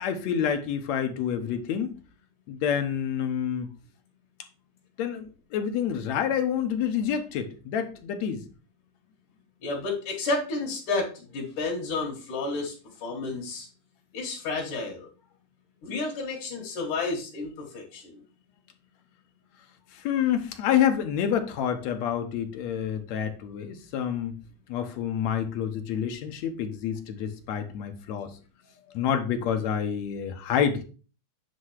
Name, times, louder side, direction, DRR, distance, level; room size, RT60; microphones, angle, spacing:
voice 1, 0.0-2.0 2.5-3.7 5.0-8.4 19.9-24.3 24.7-28.3 28.9-30.8, left 8 dB, 70° left, 6 dB, 2.2 m, -28 dB
voice 2, 9.6-12.7 13.0-13.7 14.1-15.1 15.8-18.2, left 3 dB, 90° left, -3 dB, 3.2 m, -31 dB
9.5 x 3.5 x 6.4 m, 0.37 s
omnidirectional pair, 3.4 m